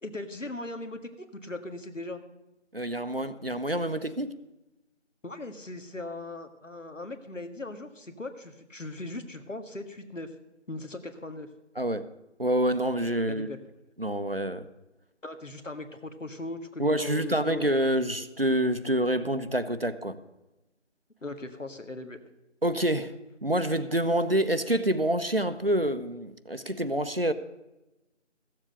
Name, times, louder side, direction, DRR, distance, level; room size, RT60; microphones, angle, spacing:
voice 1, 0.0-2.2 5.2-10.3 10.7-11.5 13.3-13.6 15.2-17.6 21.2-22.2, left 2 dB, 90° left, 1.7 m, -39 dB
voice 2, 2.7-4.3 11.8-12.1 12.4-13.5 14.0-14.7 16.8-20.2 22.6-27.3, right 1 dB, 50° right, 0.7 m, -27 dB
15.0 x 7.6 x 6.5 m
figure-of-eight pair, 180°, 37 cm